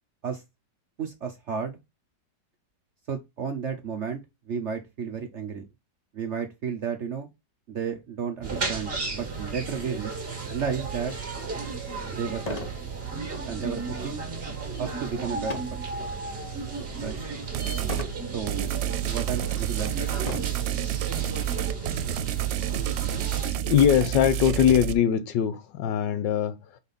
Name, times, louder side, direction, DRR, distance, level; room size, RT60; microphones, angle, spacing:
voice 1, 1.0-1.8 3.1-5.7 6.1-7.3 7.7-10.1 10.5-11.1 12.1-12.7 13.5-14.2 14.8-15.8 17.0-17.2 18.3-18.7 19.1-20.3, right 6 dB, 60° right, 0.8 m, -33 dB
sound 1, 8.4-23.5, right 4 dB, 35° right, 1.8 m, -34 dB
sound 2, 12.5-12.8 13.3-13.6 15.5-15.9 16.5-16.9 17.9-18.2 19.0-19.1 20.2-20.7 21.7-21.8 22.1-22.2 22.7-23.8, left 3 dB, 50° left, 0.4 m, -37 dB
sound 3, 17.5-18.1 18.5-24.9, right 12 dB, 85° right, 1.3 m, -29 dB
voice 2, 23.6-26.8, left 9 dB, 80° left, 1.4 m, -22 dB
4.9 x 4.1 x 5.2 m
omnidirectional pair, 2.0 m